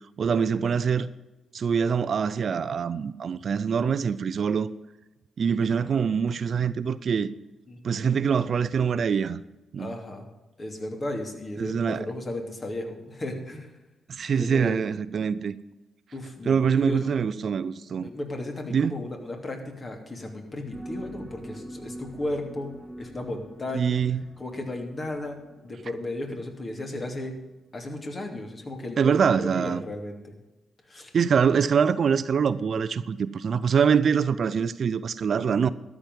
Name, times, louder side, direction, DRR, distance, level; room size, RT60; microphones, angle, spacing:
voice 1, 0.2-1.1 1.5-4.7 5.4-7.3 7.8-9.4 9.7-9.9 11.6-12.1 14.1-15.6 16.5-18.1 18.7-18.9 23.7-24.2 29.0-29.9 31.1-35.7, right 6 dB, 55° right, 0.5 m, -24 dB
voice 2, 7.7-8.0 9.8-10.2 10.6-13.7 14.4-14.8 16.1-17.1 18.0-24.0 24.4-27.3 27.7-30.4 30.9-31.1, left 1 dB, 40° left, 2.9 m, -35 dB
sound 1, 20.7-27.1 27.8-28.0 28.8-29.0 29.7-29.8, right 1 dB, ahead, 2.1 m, -44 dB
13.0 x 6.0 x 9.4 m
hypercardioid pair, 40°, 0 cm